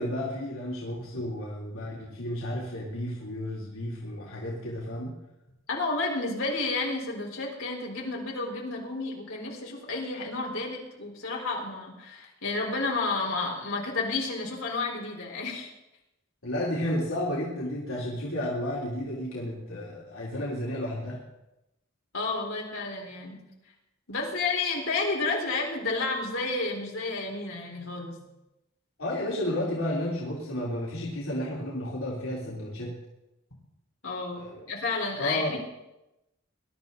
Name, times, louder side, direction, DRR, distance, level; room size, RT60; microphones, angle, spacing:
voice 1, 0.0-5.1 16.4-21.2 29.0-32.9 34.4-34.6 35.2-35.5, left 1 dB, 85° left, -5 dB, 3.5 m, -32 dB
voice 2, 5.7-15.7 22.1-23.4 24.1-28.2 34.0-34.4 34.7-35.6, left 3 dB, 70° left, -2 dB, 4.3 m, -31 dB
21.5 x 12.0 x 4.1 m, 0.92 s
head